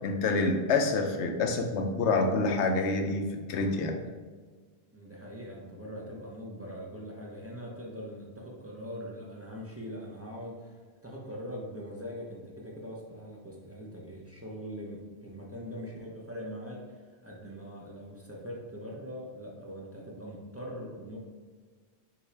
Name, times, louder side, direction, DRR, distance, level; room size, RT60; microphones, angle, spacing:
voice 1, 0.0-4.0, left 3 dB, 85° left, 4 dB, 0.9 m, -27 dB
voice 2, 4.9-21.2, equal, 15° right, -3 dB, 0.5 m, -42 dB
5.7 x 2.5 x 3.2 m, 1.5 s
omnidirectional pair, 1.1 m